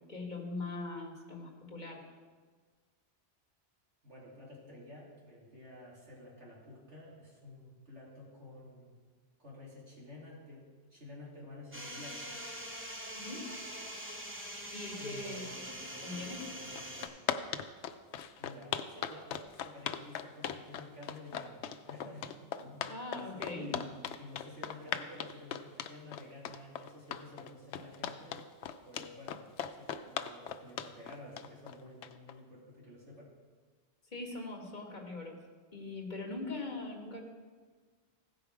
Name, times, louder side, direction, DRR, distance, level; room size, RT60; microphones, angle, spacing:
voice 1, 0.1-2.0 13.1-13.5 14.7-15.7 16.0-16.5 22.9-23.7 34.1-35.4 35.7-37.2, left 2 dB, 45° left, 0 dB, 1.6 m, -41 dB
voice 2, 4.0-8.9 9.4-12.3 15.0-15.6 18.4-23.8 24.2-28.4 28.8-29.4 29.8-33.3, left 2 dB, 85° right, -5 dB, 3.1 m, -51 dB
sound 1, 11.7-17.1, equal, 10° right, 1.0 m, -43 dB
sound 2, 16.4-16.5 16.7-32.3, left 9 dB, 85° left, 0.9 m, -38 dB
16.0 x 5.3 x 4.8 m, 1.5 s
omnidirectional pair, 1.1 m